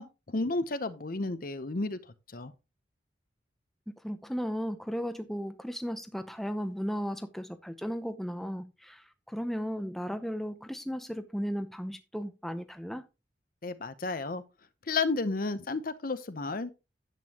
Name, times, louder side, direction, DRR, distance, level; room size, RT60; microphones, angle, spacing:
voice 1, 0.0-2.0 2.3-2.5 13.6-14.4 14.9-16.7, left 3 dB, 45° left, 0.8 m, -32 dB
voice 2, 3.9-13.0, equal, ahead, 0.7 m, -35 dB
11.0 x 8.3 x 2.9 m
head